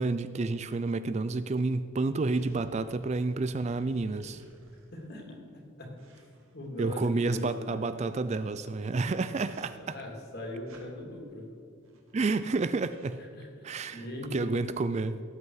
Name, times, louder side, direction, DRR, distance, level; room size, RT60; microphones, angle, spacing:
voice 1, 0.0-4.4 6.8-10.0 12.1-13.2 13.6-14.0 14.3-15.2, right 3 dB, 30° right, 13 dB, 0.3 m, -30 dB
sound 1, 2.2-5.1 6.0-7.3 8.7-8.9 9.3-10.0 10.7-10.9 11.8-12.2 12.5-12.6 12.8-13.2, right 1 dB, 75° right, 2.2 m, -54 dB
voice 2, 4.9-5.4 5.8-5.9 6.5-7.8 9.8-11.6 13.3-13.7 13.9-14.9, left 1 dB, 50° left, 0 dB, 2.9 m, -40 dB
18.0 x 8.1 x 4.8 m, 2.5 s
head